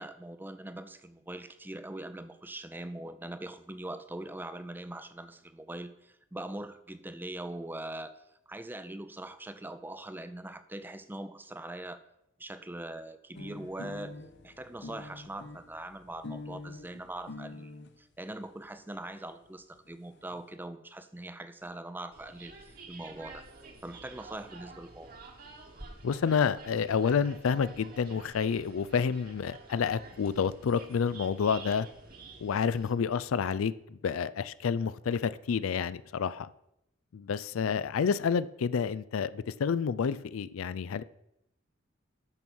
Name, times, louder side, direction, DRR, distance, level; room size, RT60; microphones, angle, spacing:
voice 1, 0.0-8.2 8.5-12.0 12.4-14.1 14.4-17.7 18.0-22.5 22.9-23.4 23.8-25.2, right 1 dB, 10° right, 11 dB, 0.5 m, -42 dB
sound 1, 13.3-17.9 18.8-18.9 19.1-19.2 19.5-19.6 19.8-20.4, left 2 dB, 60° left, 0.8 m, -45 dB
sound 2, 22.1-32.9, right 3 dB, 45° right, 1.4 m, -50 dB
voice 2, 26.0-31.9 32.4-36.5 37.1-41.0, left 6 dB, 90° left, 16 dB, 0.4 m, -29 dB
8.9 x 6.1 x 6.2 m, 0.83 s
head